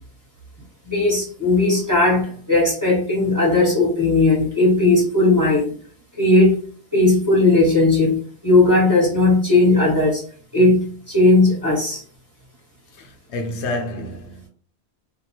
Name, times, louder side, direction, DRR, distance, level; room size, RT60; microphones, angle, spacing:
voice 1, 0.8-5.7 6.2-6.6 6.9-8.2 8.4-10.2 10.5-12.0, left 2 dB, 20° right, 0.9 m, -17 dB
voice 2, 12.9-14.5, left 1 dB, 80° left, 0.9 m, -29 dB
2.7 x 2.1 x 2.9 m
omnidirectional pair, 1.2 m